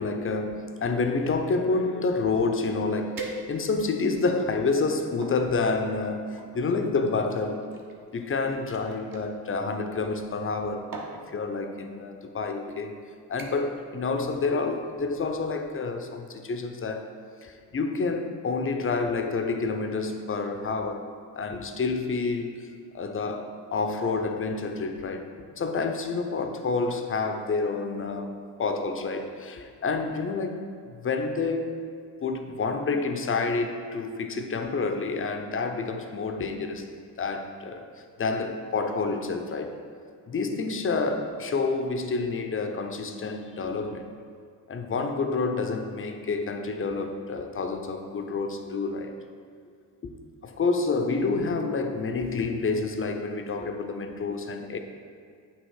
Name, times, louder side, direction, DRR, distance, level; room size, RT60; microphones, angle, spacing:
voice 1, 0.0-7.6 8.1-10.9 11.3-13.0 13.3-17.1 17.4-21.1 21.3-22.7 22.9-25.3 25.6-30.6 30.9-31.8 32.2-36.9 37.2-37.9 38.2-39.8 40.3-44.1 44.7-49.1 50.0-50.1 50.4-54.8, left 4 dB, 25° left, 5 dB, 0.7 m, -28 dB
sound 1, 3.2-3.9 4.5-5.4 6.4-9.3 10.4-10.6 10.9-11.2 12.1-12.3 12.7-13.0 13.4-13.8 14.1-14.5 14.8-14.9, right 2 dB, 40° right, 1.1 m, -42 dB
8.2 x 2.9 x 4.7 m, 2.2 s
hypercardioid pair, 55°, 48 cm